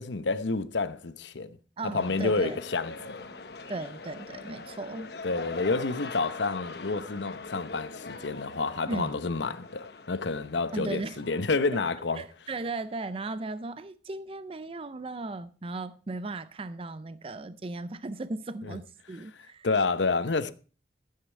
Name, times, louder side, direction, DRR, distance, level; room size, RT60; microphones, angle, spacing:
voice 1, 0.0-1.6 1.8-3.2 5.2-12.2 18.6-18.8 19.6-20.5, left 3 dB, 90° left, 0.9 m, -29 dB
voice 2, 1.8-2.6 3.7-5.1 8.9-9.2 10.7-11.2 12.2-19.7, right 2 dB, 30° right, 0.5 m, -36 dB
sound 1, 2.0-12.9 13.3-13.4, left 3 dB, 65° left, 1.1 m, -43 dB
13.5 x 8.4 x 4.6 m
head